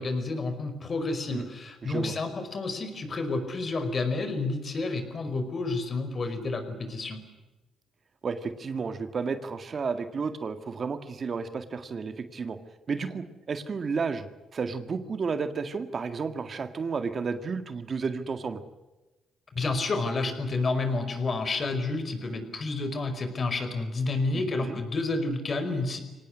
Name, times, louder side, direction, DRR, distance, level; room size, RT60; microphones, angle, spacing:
voice 1, 0.0-7.2 19.5-26.0, left 3 dB, 40° left, 8 dB, 5.1 m, -30 dB
voice 2, 1.8-2.1 8.2-12.6 12.9-18.6 24.3-24.8, right 5 dB, 45° right, 8 dB, 1.9 m, -32 dB
24.5 x 18.5 x 9.8 m, 1.1 s
cardioid pair, 90°, 0 cm